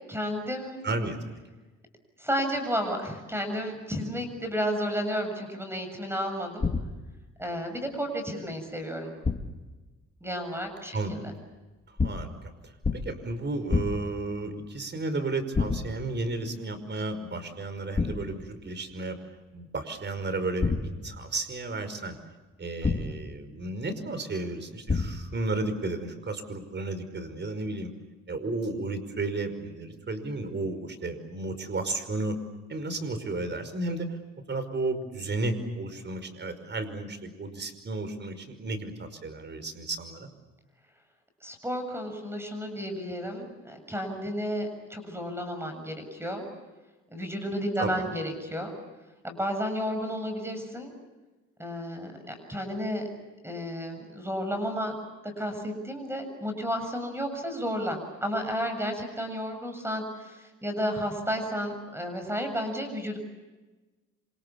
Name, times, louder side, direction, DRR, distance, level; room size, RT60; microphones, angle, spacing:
voice 1, 0.1-0.8 2.2-6.7 7.4-9.1 10.2-11.3 23.0-23.2 41.4-46.5 47.1-48.7 49.2-50.9 51.6-53.1 53.4-54.9 55.2-63.2, equal, 10° right, 6 dB, 7.4 m, -32 dB
voice 2, 0.8-1.4 10.9-11.2 11.9-19.2 19.5-22.2 22.6-27.9 28.3-32.4 32.7-34.2 34.5-40.3 47.8-48.1, right 2 dB, 35° right, 9 dB, 5.4 m, -33 dB
sound 1, 6.6-7.2 9.2-9.7 12.0-12.4 12.8-13.3 13.7-14.2 15.5-16.1 18.0-18.4 20.6-21.2 22.8-23.4 24.9-25.4, left 4 dB, 25° left, 2.1 m, -29 dB
27.5 x 27.0 x 7.2 m, 1.2 s
cardioid pair, 90°, 30 cm